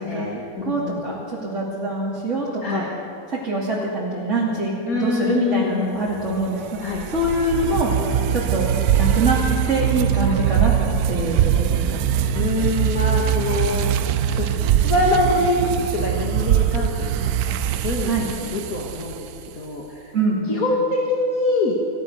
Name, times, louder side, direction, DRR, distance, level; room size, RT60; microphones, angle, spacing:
voice 1, 0.0-2.9 3.3-7.9 8.3-9.4 9.7-10.7 11.1-12.0 18.1-18.3 20.1-20.4, right 2 dB, 55° right, -7 dB, 3.3 m, -24 dB
voice 2, 0.6-1.0 2.6-2.9 4.9-5.9 6.8-7.0 12.3-13.9 14.3-14.5 14.8-17.1 17.4-18.1 18.4-19.3 19.5-20.1 20.5-21.8, left 2 dB, 75° left, -2 dB, 2.5 m, -24 dB
sound 1, 6.1-19.5, right 10 dB, 90° right, 1.2 m, -22 dB
29.0 x 15.5 x 6.5 m, 2.7 s
omnidirectional pair, 1.5 m